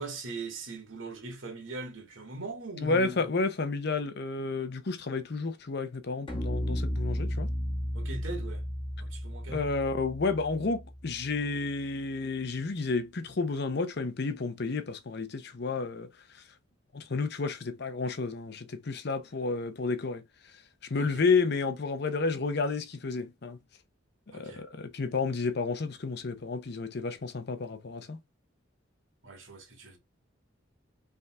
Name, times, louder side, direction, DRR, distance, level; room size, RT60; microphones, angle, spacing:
voice 1, 0.0-3.3 7.9-8.6 9.0-9.7 20.9-21.2 24.3-24.6 29.2-30.0, right 3 dB, 75° right, 1.9 m, -40 dB
voice 2, 2.8-7.5 9.5-16.4 16.9-23.6 24.3-28.2, left 4 dB, 55° left, 0.7 m, -31 dB
sound 1, 6.3-11.5, equal, 25° left, 1.0 m, -34 dB
5.4 x 3.6 x 2.3 m
head